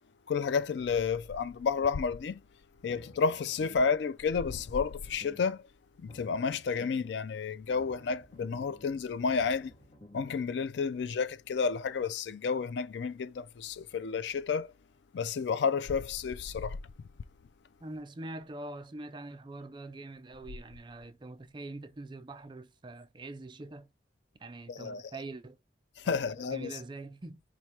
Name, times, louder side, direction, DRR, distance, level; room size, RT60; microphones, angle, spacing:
voice 1, 0.3-2.4 2.8-5.6 6.0-9.7 10.1-14.7 15.1-16.8 24.7-25.0 26.0-26.7, left 5 dB, 70° left, 0.4 m, -31 dB
sound 1, 2.8-4.0 4.3-5.6 5.9-7.2 7.5-10.4, equal, 35° left, 0.8 m, -55 dB
voice 2, 17.8-23.9 24.4-25.6 26.0-27.4, right 2 dB, 25° right, 0.4 m, -44 dB
4.6 x 2.2 x 4.2 m
head